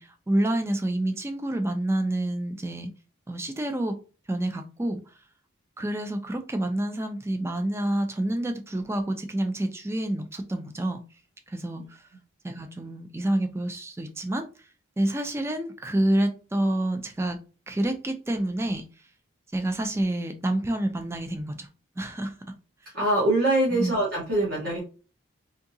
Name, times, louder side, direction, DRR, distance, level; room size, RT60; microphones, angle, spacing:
voice 1, 0.0-2.9 3.3-4.0 4.3-5.1 5.8-11.0 11.5-12.1 12.4-14.7 15.0-17.4 17.7-18.8 19.5-21.7 22.0-22.3 23.8-23.9, right 1 dB, 15° right, 0.3 m, -28 dB
voice 2, 22.9-24.8, right 1 dB, 55° right, 1.1 m, -23 dB
3.6 x 2.7 x 2.6 m
head